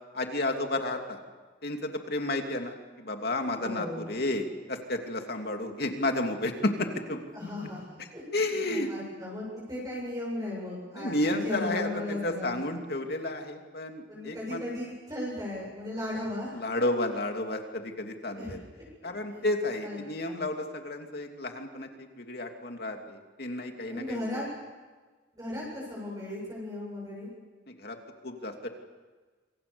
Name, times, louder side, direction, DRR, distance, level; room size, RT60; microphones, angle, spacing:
voice 1, 0.1-1.2 1.6-7.2 8.3-8.9 10.9-14.6 16.5-18.6 19.0-24.4 27.7-28.0 28.2-28.7, left 2 dB, 55° left, 4 dB, 2.9 m, -32 dB
voice 2, 3.6-4.2 7.3-8.2 8.6-12.6 14.1-16.6 18.3-18.8 19.3-19.4 19.8-20.0 20.2-20.4 23.9-24.4 25.3-27.3, left 1 dB, 20° right, -5 dB, 7.5 m, -36 dB
27.5 x 25.0 x 7.1 m, 1.4 s
head